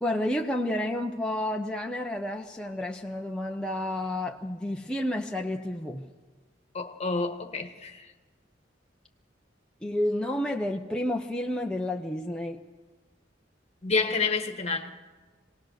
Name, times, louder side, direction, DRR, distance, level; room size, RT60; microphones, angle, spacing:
voice 1, 0.0-6.1 9.8-12.6, left 1 dB, 5° left, 0.8 m, -30 dB
voice 2, 6.7-8.1 13.8-14.9, left 4 dB, 35° left, 1.5 m, -29 dB
27.5 x 18.5 x 6.5 m
head